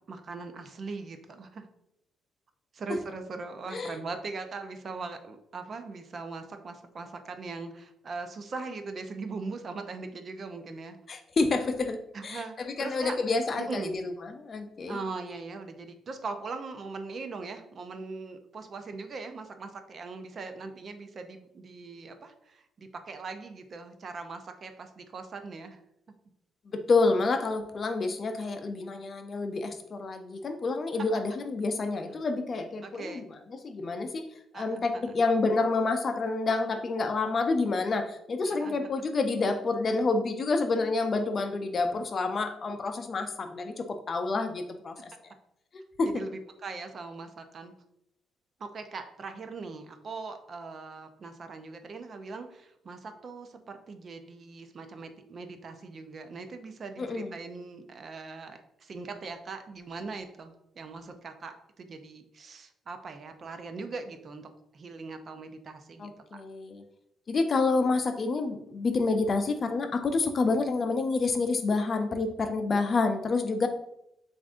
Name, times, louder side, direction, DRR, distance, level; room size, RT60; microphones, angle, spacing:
voice 1, 0.1-1.7 2.7-11.0 12.1-13.2 13.6-13.9 14.9-25.8 32.8-33.2 34.5-35.2 38.4-38.9 45.0-45.1 46.0-47.7 48.6-66.1, right 4 dB, 50° right, 7 dB, 0.5 m, -40 dB
voice 2, 11.1-12.0 12.2-15.0 26.7-33.4 33.6-34.2 34.5-45.1 45.7-46.1 57.0-57.3 66.0-66.8 67.3-73.7, left 3 dB, 45° left, 7 dB, 0.5 m, -28 dB
7.2 x 2.6 x 2.5 m, 0.80 s
cardioid pair, 90°, 0 cm